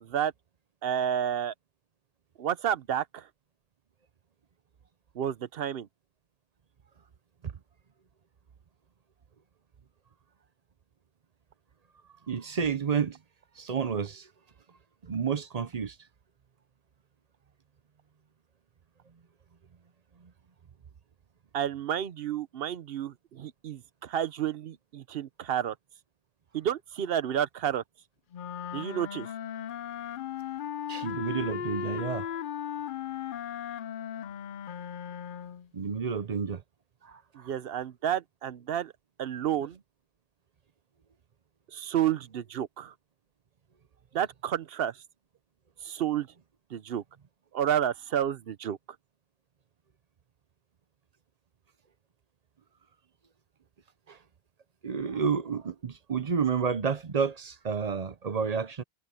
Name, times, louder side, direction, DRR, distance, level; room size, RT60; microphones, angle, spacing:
voice 1, 0.0-0.3 0.8-1.5 2.4-3.3 5.1-5.9 21.5-25.8 26.5-27.8 28.7-29.3 37.3-38.9 39.2-39.8 41.7-42.9 44.1-45.0 45.8-46.3 46.7-47.0 47.5-48.8, right 10 dB, 70° right, 0.9 m, -30 dB
voice 2, 12.3-13.2 13.6-14.3 15.1-16.0 30.9-32.3 35.7-36.6 37.0-37.5 54.1-54.2 54.8-58.8, right 6 dB, 45° right, 0.8 m, -30 dB
sound 1, 28.3-35.7, left 9 dB, 60° left, 0.7 m, -37 dB
omnidirectional pair, 1.0 m